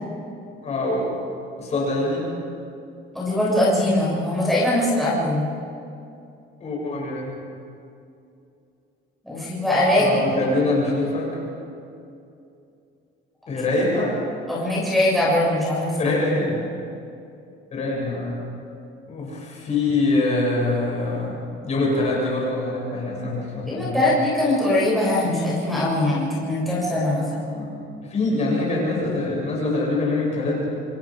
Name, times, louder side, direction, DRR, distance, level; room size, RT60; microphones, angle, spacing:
voice 1, 0.6-1.0 1.6-2.3 6.6-7.4 9.9-11.3 13.5-14.2 16.0-16.6 17.7-18.4 19.1-24.1 27.3-27.7 28.0-30.7, left 2 dB, 30° left, -3 dB, 7.5 m, -24 dB
voice 2, 3.1-5.5 9.2-10.2 13.8-13.9 14.5-16.1 23.6-27.3, left 1 dB, ahead, -8 dB, 7.0 m, -21 dB
29.0 x 28.0 x 5.2 m, 2.6 s
cardioid pair, 180°, 21 cm